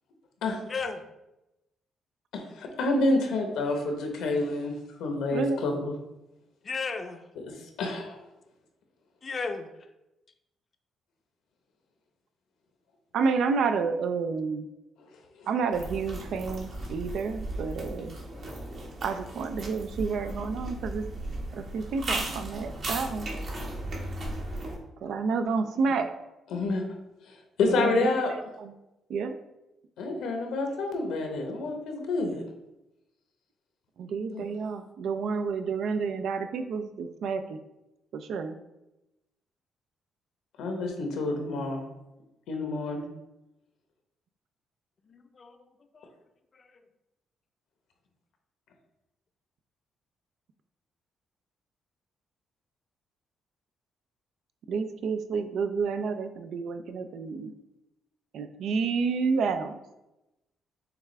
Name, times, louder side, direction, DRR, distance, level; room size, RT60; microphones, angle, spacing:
voice 1, 0.7-1.0 6.6-7.2 9.2-9.9 45.1-45.7 45.9-46.1 46.5-46.7, left 4 dB, 40° left, 7 dB, 0.5 m, -35 dB
voice 2, 2.3-4.7 5.0-5.9 7.4-7.5 7.8-8.2 15.4-15.5 26.5-26.8 27.6-28.3 30.0-32.4 34.3-34.4 40.6-41.8 42.5-43.1, left 2 dB, 85° left, 3 dB, 0.9 m, -28 dB
voice 3, 13.1-14.7 15.5-18.2 19.0-21.0 21.5-23.3 25.0-26.1 27.7-28.0 28.3-28.7 29.1-29.4 34.0-37.6 38.1-38.6 54.7-57.5 58.3-59.8, right 5 dB, 75° right, 9 dB, 0.4 m, -30 dB
sound 1, 15.7-24.7, right 1 dB, 55° right, 1.4 m, -36 dB
6.7 x 2.4 x 3.2 m, 0.94 s
cardioid pair, 90°, 0 cm